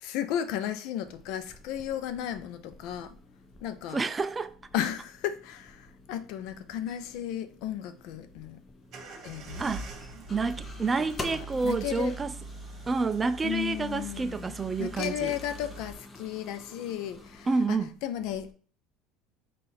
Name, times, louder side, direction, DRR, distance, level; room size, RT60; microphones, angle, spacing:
voice 1, 0.0-3.1 3.6-4.0 4.7-8.6 9.2-9.6 11.3-12.2 13.4-18.5, left 10 dB, 70° left, 0.5 m, -34 dB
sound 1, 1.0-17.7, left 2 dB, 20° left, 0.7 m, -48 dB
voice 2, 3.9-4.5 9.6-9.9 10.3-12.3 12.9-15.3 17.5-17.9, right 4 dB, 20° right, 0.3 m, -29 dB
sound 2, 8.9-15.9, right 2 dB, 45° right, 1.1 m, -43 dB
3.9 x 2.5 x 4.2 m
supercardioid pair, 105°, 0 cm